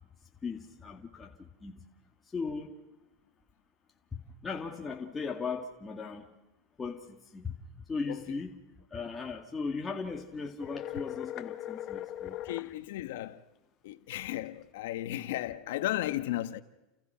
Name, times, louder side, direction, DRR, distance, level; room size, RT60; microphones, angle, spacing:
voice 1, 0.4-1.8 2.3-2.7 4.1-6.3 6.8-7.5 7.9-8.5 8.9-12.4, left 4 dB, 15° left, 2.1 m, -37 dB
voice 2, 8.1-8.4 12.3-13.4 13.8-16.6, left 14 dB, 80° left, 1.3 m, -35 dB
sound 1, 10.6-12.7, left 13 dB, 40° left, 1.3 m, -39 dB
29.5 x 29.5 x 5.8 m
supercardioid pair, 140°, 0 cm